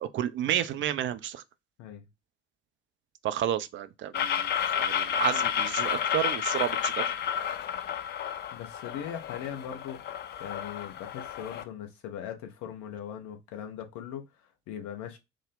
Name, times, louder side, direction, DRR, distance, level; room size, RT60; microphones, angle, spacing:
voice 1, 0.0-1.4 3.2-4.5 4.8-7.0, right 11 dB, 35° right, 0.4 m, -31 dB
sound 1, 4.1-11.6, left 8 dB, 30° left, 0.4 m, -31 dB
voice 2, 8.5-10.0 10.4-15.2, left 9 dB, 55° left, 0.9 m, -40 dB
3.6 x 2.1 x 3.6 m
figure-of-eight pair, 50°, 34 cm